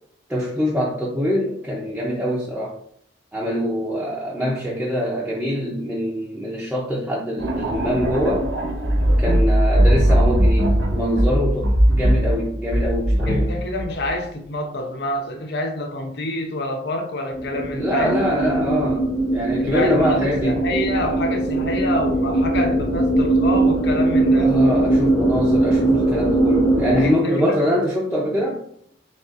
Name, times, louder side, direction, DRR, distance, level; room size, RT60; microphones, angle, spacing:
voice 1, 0.3-2.8 3.3-8.5 9.2-13.5 17.7-19.0 19.3-20.5 24.4-28.6, equal, 5° right, 0.6 m, -24 dB
sound 1, 7.4-14.3, equal, 70° right, 1.0 m, -19 dB
voice 2, 13.3-18.2 18.5-18.8 19.6-24.5 27.0-27.7, left 1 dB, 55° left, 0.7 m, -27 dB
sound 2, 17.3-27.1, right 2 dB, 20° left, 1.1 m, -20 dB
6.4 x 2.5 x 2.5 m
head